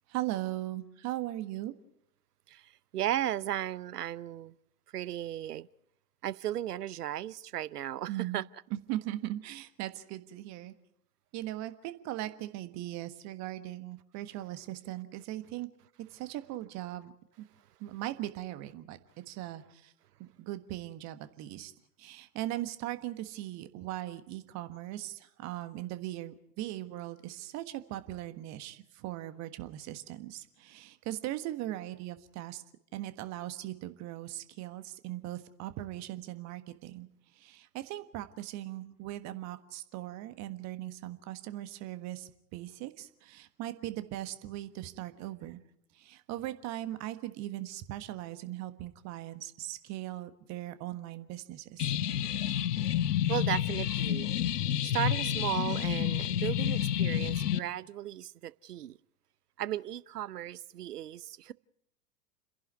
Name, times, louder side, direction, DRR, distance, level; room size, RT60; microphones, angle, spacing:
voice 1, 0.1-1.7 8.1-8.4 8.7-10.7 11.3-15.7 16.1-17.1 17.4-17.5 17.8-19.0 19.3-19.9 20.2-21.7 22.0-32.6 32.9-37.1 37.4-45.6 46.0-51.9, right 15 dB, 35° right, 1.5 m, -39 dB
voice 2, 2.5-4.5 4.9-5.7 6.2-8.4 53.3-54.3 54.8-59.0 59.6-61.5, right 12 dB, 70° right, 0.8 m, -35 dB
sound 1, 51.8-57.6, left 10 dB, 75° left, 0.8 m, -29 dB
29.5 x 11.0 x 9.5 m
figure-of-eight pair, 95°, 48 cm